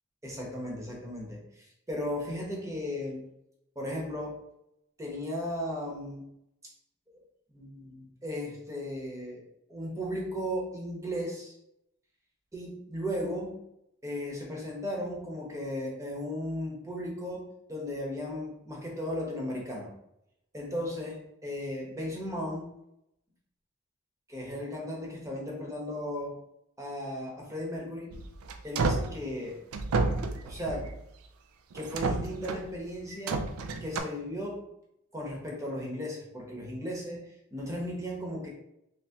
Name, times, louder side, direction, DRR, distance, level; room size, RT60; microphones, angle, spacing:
voice 1, 0.2-3.3 3.7-4.4 5.0-6.2 7.5-9.4 9.7-11.5 12.5-13.6 14.0-19.9 20.5-22.7 24.3-26.3 26.8-28.1 28.6-29.6 30.4-30.9 31.7-33.5 33.8-34.6 35.1-38.5, equal, 15° right, -2 dB, 0.8 m, -36 dB
sound 1, 28.1-29.2 29.7-31.0 31.7-32.7 33.3-34.0, right 3 dB, 80° right, 0.4 m, -30 dB
3.4 x 3.0 x 2.8 m, 0.81 s
head